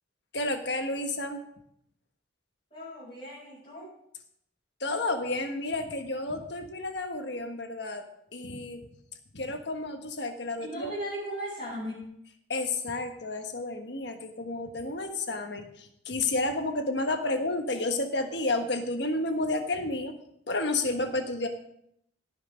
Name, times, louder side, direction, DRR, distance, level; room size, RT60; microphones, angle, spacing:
voice 1, 0.3-1.4 4.8-8.0 8.3-8.9 9.3-10.9 12.5-20.1 20.5-21.5, left 2 dB, 55° left, 5 dB, 1.4 m, -31 dB
voice 2, 2.7-3.9 10.6-12.0, equal, 30° left, -10 dB, 5.2 m, -37 dB
17.0 x 6.1 x 5.1 m, 0.74 s
head